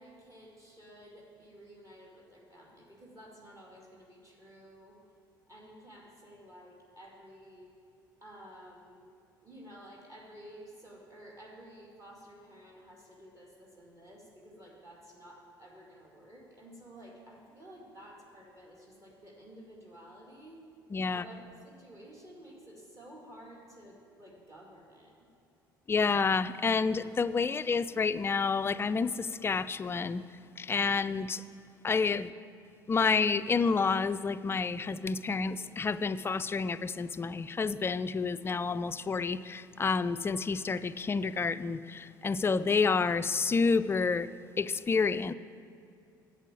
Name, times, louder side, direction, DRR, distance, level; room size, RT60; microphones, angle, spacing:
voice 1, 0.0-5.0 5.5-7.7 8.2-9.1 9.4-20.6 21.1-25.2, equal, 30° right, -2 dB, 2.2 m, -52 dB
voice 2, 20.9-21.2 25.9-30.2 30.6-31.4 31.8-32.3 32.9-44.3 44.6-45.3, left 4 dB, 20° left, 14 dB, 0.3 m, -29 dB
8.2 x 7.8 x 8.6 m, 2.4 s
figure-of-eight pair, 55°, 11 cm